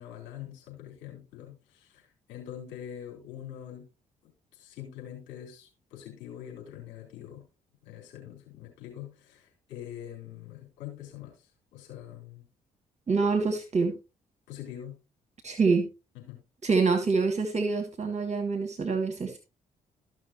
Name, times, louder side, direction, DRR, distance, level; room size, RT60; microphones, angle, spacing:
voice 1, 0.0-2.0 2.3-3.8 4.6-7.4 7.8-11.3 11.7-12.4 14.5-15.0 16.3-16.4, left 10 dB, 75° left, 1 dB, 4.1 m, -44 dB
voice 2, 13.1-13.9 15.4-15.9 16.6-19.4, right 4 dB, 35° right, 7 dB, 1.6 m, -26 dB
14.0 x 6.3 x 3.0 m, 0.28 s
hypercardioid pair, 45°, 19 cm